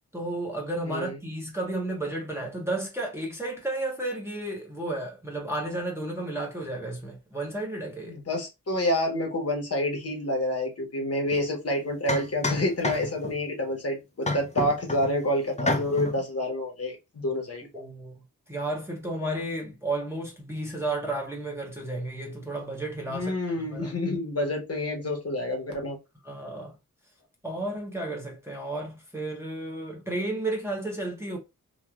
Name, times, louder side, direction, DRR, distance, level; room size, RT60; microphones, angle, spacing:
voice 1, 0.1-8.2 17.7-23.9 26.3-26.7 27.4-31.4, right 2 dB, 10° right, 0.8 m, -33 dB
voice 2, 8.3-17.6 23.1-26.0, left 1 dB, 45° left, 1.0 m, -28 dB
sound 1, 11.3-11.4 12.1-13.4 14.2-15.1 15.6-16.2, left 2 dB, 20° left, 0.5 m, -29 dB
3.0 x 2.3 x 2.3 m
wide cardioid pair, 105°, 34 cm